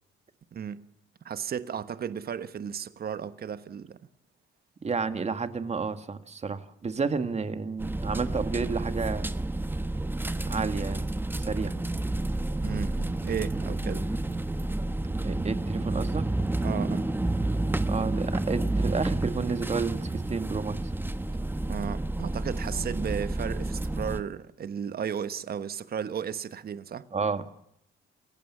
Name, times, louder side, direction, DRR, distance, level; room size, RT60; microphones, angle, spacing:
voice 1, 0.5-0.8 1.2-4.0 12.6-14.1 16.6-17.1 21.7-27.1, right 8 dB, 50° right, 1.2 m, -34 dB
voice 2, 4.8-9.3 10.5-11.0 11.4-11.7 15.2-16.2 17.9-20.8 27.1-27.4, right 5 dB, 35° right, 1.9 m, -31 dB
sound 1, 7.8-24.2, right 2 dB, 10° right, 1.2 m, -30 dB
28.5 x 15.5 x 7.3 m
cardioid pair, 90°, 20 cm